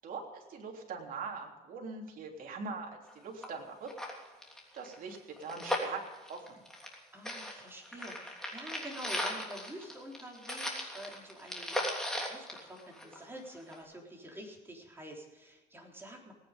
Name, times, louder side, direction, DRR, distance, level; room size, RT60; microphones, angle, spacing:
voice 1, 0.0-3.9 4.2-4.3 4.7-6.0 6.3-6.6, right 4 dB, 55° right, 0 dB, 3.4 m, -42 dB
sound 1, 3.1-3.2 3.4-3.5 3.8-7.0 7.2-13.3 13.7-13.8, left 1 dB, 5° left, 3.2 m, -37 dB
voice 2, 7.1-16.3, right 1 dB, 15° right, -1 dB, 3.8 m, -48 dB
18.5 x 9.6 x 5.2 m, 1.2 s
cardioid pair, 110°, 17 cm